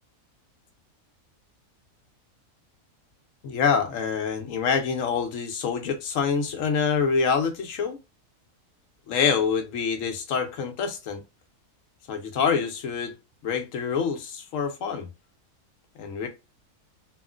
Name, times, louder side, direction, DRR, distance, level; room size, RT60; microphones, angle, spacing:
voice 1, 3.4-8.0 9.1-11.2 12.1-13.1 13.4-15.1 16.0-16.3, left 6 dB, 65° left, 0.9 m, -26 dB
2.9 x 2.4 x 2.3 m
omnidirectional pair, 1.6 m